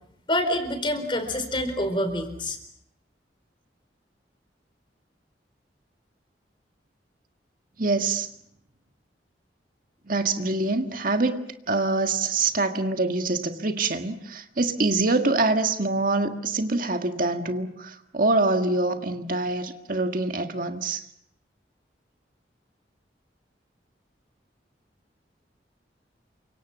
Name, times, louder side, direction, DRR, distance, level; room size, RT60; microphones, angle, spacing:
voice 1, 0.3-2.6, left 1 dB, 30° left, 4.3 m, -26 dB
voice 2, 7.8-8.3 10.1-21.0, right 3 dB, 50° right, 1.7 m, -25 dB
29.0 x 25.0 x 7.3 m
head